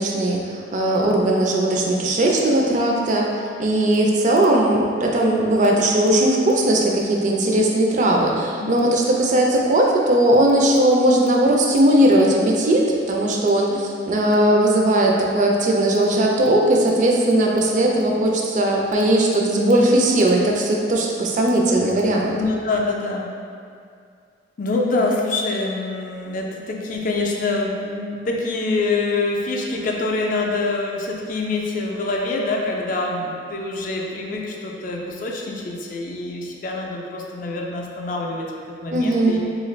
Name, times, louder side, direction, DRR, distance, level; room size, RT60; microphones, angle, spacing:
voice 1, 0.0-3.3 3.6-22.3 38.9-39.4, right 1 dB, 40° right, -1 dB, 0.4 m, -18 dB
voice 2, 22.2-23.3 24.6-38.5 38.8-39.4, left 3 dB, 45° left, -1 dB, 0.4 m, -25 dB
3.5 x 2.4 x 3.1 m, 2.3 s
head